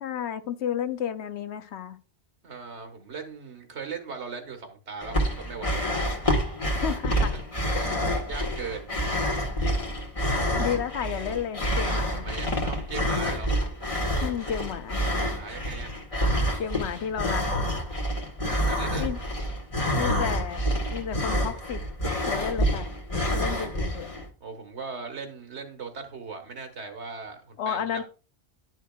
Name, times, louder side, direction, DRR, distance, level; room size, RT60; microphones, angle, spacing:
voice 1, 0.0-2.0 6.8-7.3 7.7-7.9 10.6-12.3 14.2-15.0 16.6-17.5 19.0-19.2 19.9-21.8 22.3-22.9 23.3-24.1 27.6-28.0, left 8 dB, 75° left, 1.0 m, -32 dB
voice 2, 2.4-5.9 7.1-7.4 7.8-8.0 8.3-8.9 11.9-13.5 15.2-16.0 18.4-19.1 23.5-23.9 24.4-28.0, right 4 dB, 80° right, 1.7 m, -39 dB
sound 1, 5.0-24.3, equal, 30° left, 1.3 m, -27 dB
11.0 x 6.3 x 2.3 m
omnidirectional pair, 1.1 m